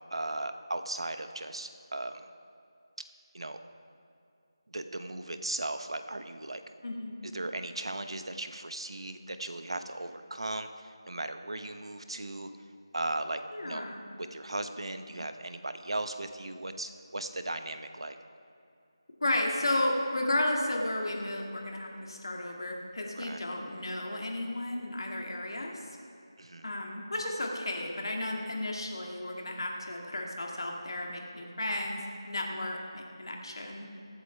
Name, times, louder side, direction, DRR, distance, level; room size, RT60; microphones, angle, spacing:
voice 1, 0.1-2.2 3.3-3.6 4.7-6.6 7.2-12.5 12.9-13.9 14.2-18.2 23.1-23.4 26.4-26.7, right 2 dB, 80° right, 8 dB, 1.0 m, -37 dB
voice 2, 6.8-7.2 13.5-14.0 19.2-25.7 26.6-33.9, left 1 dB, 60° left, 0 dB, 2.1 m, -33 dB
22.0 x 7.9 x 3.4 m, 2.5 s
figure-of-eight pair, 175°, 3 cm